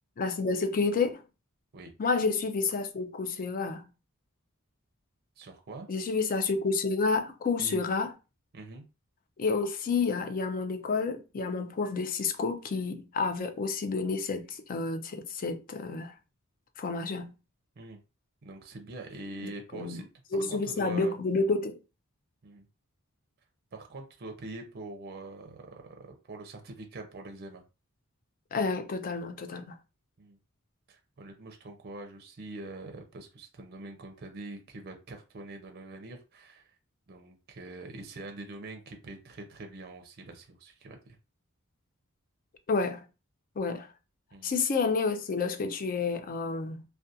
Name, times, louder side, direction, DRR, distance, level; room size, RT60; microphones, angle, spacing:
voice 1, 0.2-1.2 2.0-3.8 5.9-8.1 9.4-16.1 16.8-17.3 19.7-20.0 20.3-21.8 28.5-29.8 42.7-43.0 43.6-43.9 44.4-46.8, left 4 dB, 40° left, 0.4 m, -29 dB
voice 2, 5.4-5.9 7.6-7.8 8.5-8.8 17.8-18.0 18.4-20.0 20.3-21.1 22.4-22.7 23.7-27.6 30.2-30.4 30.9-36.7 37.1-41.2 44.3-44.5, right 2 dB, 50° right, 0.5 m, -44 dB
2.4 x 2.2 x 2.6 m
head